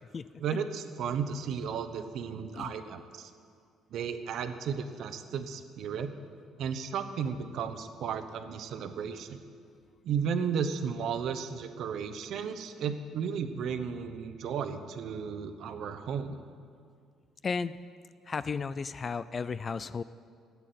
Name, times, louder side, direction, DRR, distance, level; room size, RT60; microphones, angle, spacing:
voice 1, 0.4-3.3 3.9-6.1 6.6-9.4 10.0-16.4, right 7 dB, 60° right, 9 dB, 0.9 m, -34 dB
voice 2, 17.4-17.8 18.3-20.0, left 5 dB, 30° left, 15 dB, 0.3 m, -34 dB
12.5 x 8.5 x 9.3 m, 2.2 s
cardioid pair, 135°, 0 cm